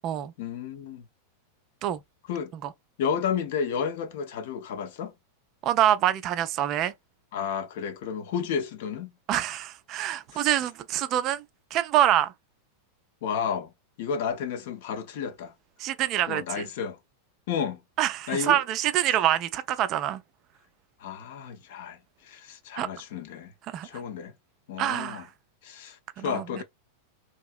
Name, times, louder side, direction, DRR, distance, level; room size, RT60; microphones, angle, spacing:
voice 1, 0.4-1.1 2.3-2.5 3.0-5.1 7.3-9.1 10.3-10.5 13.2-13.7 14.0-15.5 16.3-17.0 17.5-17.8 18.3-18.6 21.0-22.0 22.2-23.5 23.8-24.3 24.7-25.3 25.6-26.6, left 7 dB, 50° left, 0.5 m, -32 dB
voice 2, 5.6-6.9 9.3-11.4 11.7-12.3 15.8-16.6 18.0-20.2 22.8-22.9 23.7-23.9 24.8-25.3 26.2-26.6, right 12 dB, 35° right, 0.3 m, -25 dB
2.9 x 2.7 x 2.4 m
figure-of-eight pair, 90°, 0 cm